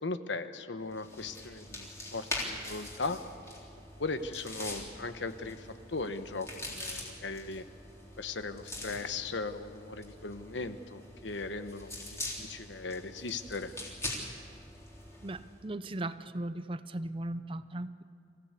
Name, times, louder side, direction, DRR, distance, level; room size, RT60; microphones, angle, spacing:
voice 1, 0.0-3.2 4.0-7.6 8.2-13.7, left 3 dB, 80° left, 10 dB, 1.1 m, -38 dB
sound 1, 0.9-15.6, left 1 dB, 15° left, 3.6 m, -43 dB
voice 2, 15.2-18.0, right 1 dB, 30° right, 13 dB, 0.6 m, -37 dB
26.0 x 16.5 x 8.3 m, 2.5 s
head